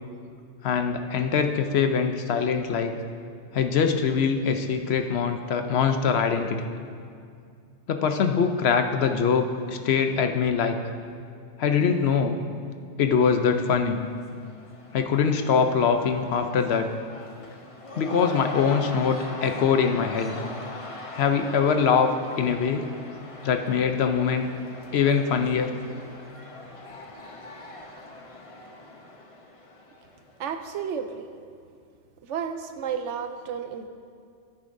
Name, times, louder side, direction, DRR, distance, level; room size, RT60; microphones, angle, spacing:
voice 1, 0.6-2.9 3.5-6.7 7.9-10.8 11.6-12.4 13.0-14.0 14.9-16.9 18.0-20.3 21.2-22.1 22.4-22.9 23.4-24.5 24.9-25.7, left 6 dB, 65° left, 6 dB, 0.8 m, -23 dB
Cheering / Crowd, 13.9-30.5, left 2 dB, 30° left, 0.7 m, -41 dB
voice 2, 30.4-31.3 32.2-33.9, right 7 dB, 80° right, 8 dB, 0.9 m, -32 dB
14.0 x 8.3 x 2.6 m, 2.3 s
omnidirectional pair, 1.2 m